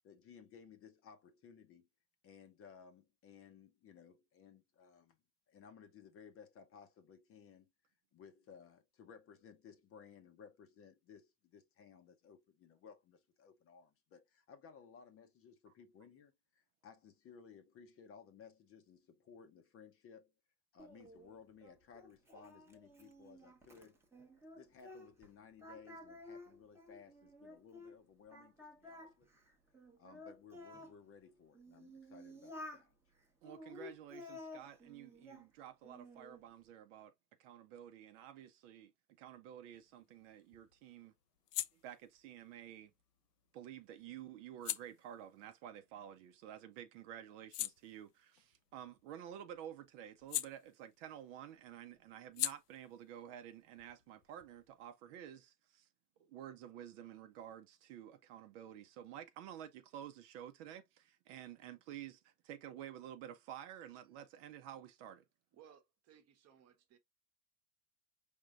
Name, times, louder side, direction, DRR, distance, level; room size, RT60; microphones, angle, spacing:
voice 1, 0.0-1.9 2.2-5.2 5.5-20.3 20.7-24.0 24.4-29.3 30.0-33.0, left 6 dB, 25° left, 0.8 m, -59 dB
Singing, 20.8-25.3 25.6-28.0 28.3-30.9 31.5-32.9 33.4-35.5 35.8-36.4, left 1 dB, 5° right, 1.0 m, -53 dB
voice 2, 33.4-37.1 37.4-38.9 39.2-41.1 41.7-42.9 43.5-55.9 56.2-65.2, right 10 dB, 45° right, 0.7 m, -51 dB
sound 1, 39.7-46.6 47.0-51.3 51.5-54.9, left 14 dB, 70° left, 0.7 m, -46 dB
voice 3, 65.5-67.0, right 9 dB, 30° right, 1.1 m, -63 dB
5.0 x 3.6 x 2.4 m
hypercardioid pair, 105°, 49 cm